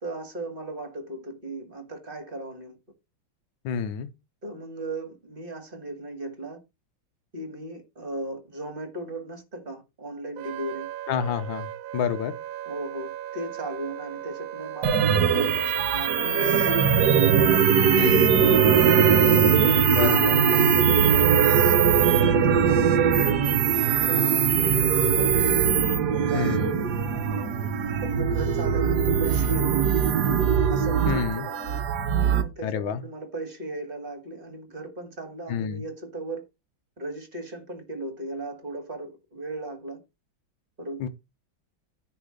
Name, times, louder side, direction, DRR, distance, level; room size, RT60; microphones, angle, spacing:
voice 1, 0.0-2.8 4.4-6.6 7.3-10.9 12.7-16.7 17.6-18.6 19.6-19.9 20.1-21.0 22.2-25.6 26.1-27.5 28.0-29.9 30.7-31.6 32.2-36.4 37.0-40.0 40.8-41.1, right 2 dB, 30° right, 2.0 m, -36 dB
voice 2, 3.6-4.1 11.1-12.4 18.0-18.4 19.9-20.4 22.3-22.7 26.3-26.8 31.0-31.5 32.6-33.0 35.5-35.8 41.0-41.1, left 8 dB, 80° left, 1.6 m, -28 dB
Wind instrument woodwind instrument, 10.4-16.5, right 12 dB, 85° right, 1.4 m, -38 dB
sound 1, 14.8-32.4, right 7 dB, 65° right, 1.3 m, -21 dB
sound 2, 26.8-31.8, left 2 dB, 35° left, 2.3 m, -46 dB
10.0 x 3.9 x 6.4 m
omnidirectional pair, 2.1 m